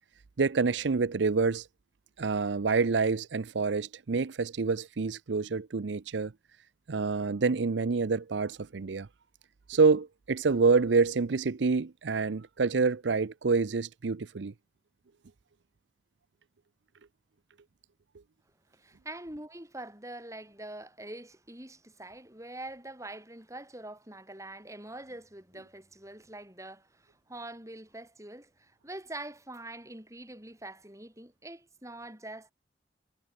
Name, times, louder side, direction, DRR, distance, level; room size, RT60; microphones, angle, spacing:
voice 1, 0.4-1.6 2.2-6.3 6.9-9.1 9.7-14.5, right 4 dB, 80° right, 0.6 m, -27 dB
voice 2, 18.7-32.5, right 1 dB, 15° right, 7.9 m, -44 dB
head